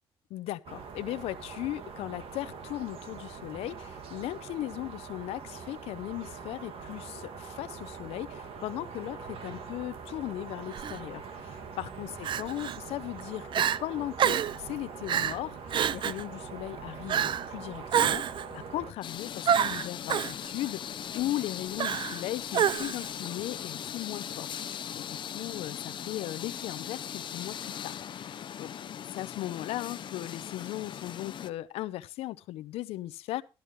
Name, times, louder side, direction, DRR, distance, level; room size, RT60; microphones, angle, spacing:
voice 1, 0.3-15.6 15.9-28.7 29.1-33.4, left 15 dB, 90° left, 0.6 m, -37 dB
sound 1, 0.6-18.9, right 5 dB, 70° right, 2.2 m, -43 dB
Crying sobbing, 10.7-11.0 12.2-12.8 13.2-13.3 13.5-13.8 14.2-14.6 15.1-15.4 15.7-16.2 17.1-17.5 17.9-18.4 19.5-20.3 21.8-22.2 22.5-23.1, right 9 dB, 55° right, 0.5 m, -27 dB
sound 2, 19.0-31.5, left 9 dB, 55° left, 0.7 m, -39 dB
13.0 x 12.0 x 3.1 m
cardioid pair, 90°, 10 cm